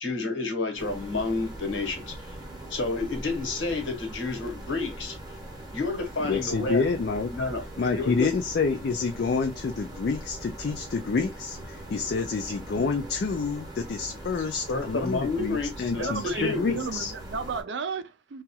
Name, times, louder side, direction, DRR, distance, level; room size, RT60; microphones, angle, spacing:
voice 1, 0.0-2.3 2.7-5.2 5.7-6.8 7.3-7.7 7.9-8.3 14.7-16.8, left 3 dB, 70° left, 1.1 m, -30 dB
sound 1, 0.8-17.6, right 1 dB, 20° right, 0.9 m, -41 dB
voice 2, 6.3-7.3 7.8-17.1, left 4 dB, 50° left, 0.4 m, -28 dB
voice 3, 16.0-18.4, right 5 dB, 60° right, 0.4 m, -33 dB
2.9 x 2.3 x 2.8 m
head